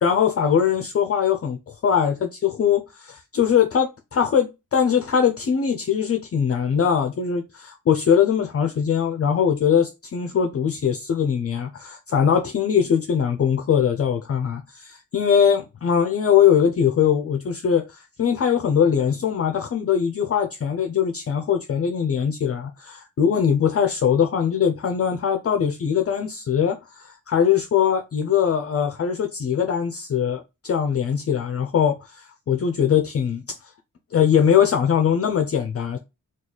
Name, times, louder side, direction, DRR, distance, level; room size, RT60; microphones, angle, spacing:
voice 1, 0.0-33.7 34.1-36.0, left 8 dB, 45° left, 0.5 m, -21 dB
3.1 x 2.3 x 3.9 m
cardioid pair, 85°, 33 cm